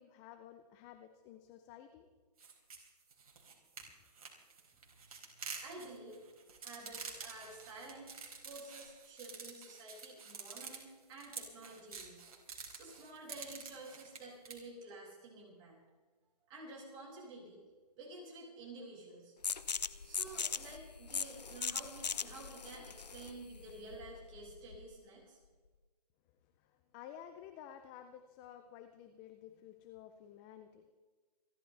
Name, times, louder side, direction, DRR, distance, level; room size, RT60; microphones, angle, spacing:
voice 1, 0.0-2.1 26.6-30.9, left 10 dB, 10° left, 9 dB, 0.4 m, -53 dB
sound 1, 2.4-14.6, right 5 dB, 60° right, 4.2 m, -48 dB
voice 2, 4.8-6.2 6.6-12.2 12.7-15.8 16.5-17.6 18.0-19.3 20.0-25.4, right 2 dB, 20° right, -3 dB, 6.1 m, -51 dB
sound 2, 19.4-24.9, left 6 dB, 90° left, 0.9 m, -40 dB
28.5 x 12.5 x 3.3 m, 1.4 s
hypercardioid pair, 150°, 21 cm